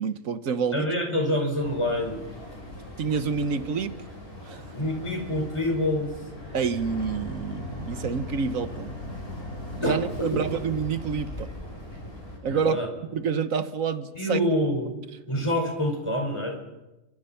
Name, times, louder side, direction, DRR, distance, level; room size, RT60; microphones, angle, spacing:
voice 1, 0.0-0.9 3.0-4.0 4.5-4.6 6.5-8.9 9.8-11.5 12.4-12.8 13.1-14.4, right 6 dB, 80° right, 1.5 m, -28 dB
voice 2, 0.7-2.2 4.7-6.1 9.8-10.3 12.4-12.9 14.1-14.9 15.3-16.6, left 1 dB, 20° left, 5.3 m, -26 dB
Boat Water vehicle, 1.6-12.4, left 1 dB, 45° left, 7.2 m, -39 dB
30.0 x 25.0 x 5.8 m
omnidirectional pair, 1.4 m